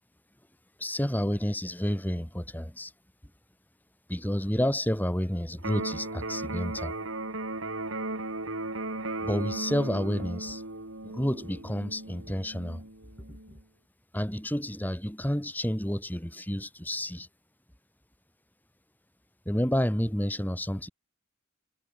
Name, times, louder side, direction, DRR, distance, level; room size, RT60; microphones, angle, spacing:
voice 1, 0.8-2.9 4.1-6.9 9.2-10.6 11.0-12.8 13.3-13.4 14.1-17.3 19.5-20.9, equal, 10° left, 3.7 m, -30 dB
Electric guitar, 5.6-13.6, right 2 dB, 75° right, 6.2 m, -36 dB
head